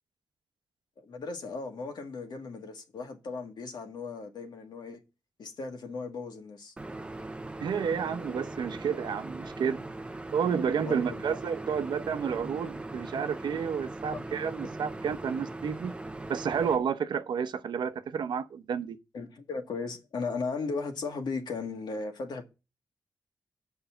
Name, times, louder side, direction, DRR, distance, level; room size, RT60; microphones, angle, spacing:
voice 1, 1.0-5.0 5.4-6.7 10.9-11.4 14.1-14.3 19.1-22.4, left 4 dB, 70° left, 1.8 m, -36 dB
sound 1, 6.8-16.8, right 2 dB, 15° right, 0.6 m, -40 dB
voice 2, 7.6-9.8 10.3-15.9 16.3-19.0, right 7 dB, 80° right, 0.8 m, -30 dB
7.9 x 5.5 x 6.8 m
wide cardioid pair, 145°, 8 cm